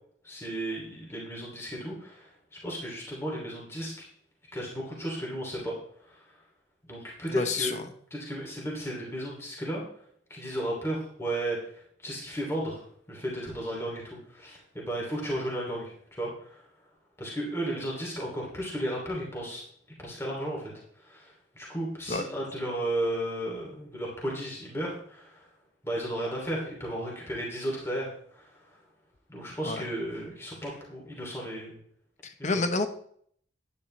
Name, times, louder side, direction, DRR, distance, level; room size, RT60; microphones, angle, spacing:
voice 1, 0.2-4.1 4.5-6.4 6.9-7.8 8.1-9.8 10.3-12.8 13.1-16.6 17.2-19.6 20.0-20.7 21.0-25.5 25.8-28.8 29.3-31.8 32.4-32.6, right 1 dB, 15° left, -3 dB, 2.7 m, -34 dB
voice 2, 7.3-7.8 22.1-22.3 29.6-29.8 32.2-32.9, left 3 dB, 40° left, 9 dB, 0.9 m, -29 dB
10.5 x 10.0 x 3.2 m, 0.63 s
head